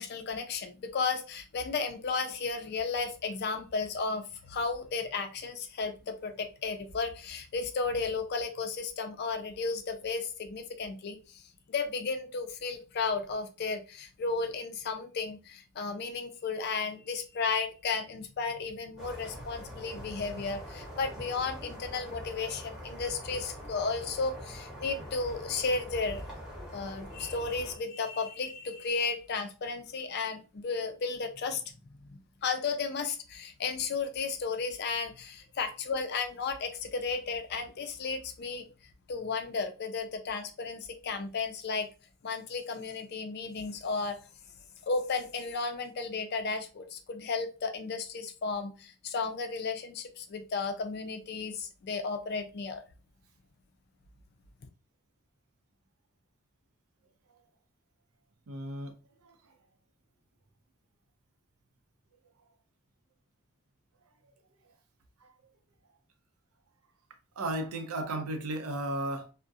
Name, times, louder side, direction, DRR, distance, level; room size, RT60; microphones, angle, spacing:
voice 1, 0.0-11.4 11.7-26.2 26.7-38.7 39.1-41.9 42.2-44.2 44.9-52.8, left 4 dB, 50° left, 0.4 m, -34 dB
sound 1, 19.0-27.8, equal, ahead, 0.8 m, -44 dB
voice 2, 58.5-59.6 65.2-65.3 67.4-69.3, right 1 dB, 90° right, 0.5 m, -35 dB
2.3 x 2.0 x 2.6 m
head